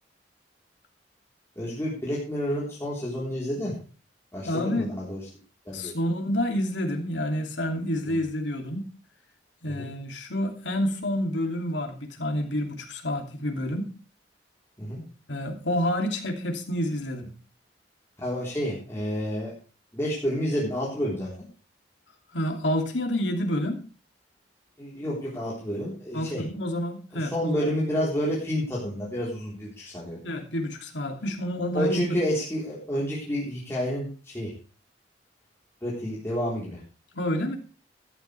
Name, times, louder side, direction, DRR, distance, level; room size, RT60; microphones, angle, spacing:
voice 1, 1.6-3.8 4.3-5.2 5.7-5.9 8.0-8.2 9.7-9.9 14.8-15.0 18.2-19.5 19.9-21.3 24.8-26.4 27.1-30.2 31.7-34.5 35.8-36.8, equal, 15° left, 3.9 m, -29 dB
voice 2, 4.4-4.9 5.7-8.8 9.6-13.9 15.3-17.3 22.3-23.8 26.1-27.7 30.2-32.1 37.1-37.6, left 1 dB, 85° left, 2.7 m, -28 dB
13.5 x 12.0 x 3.4 m
head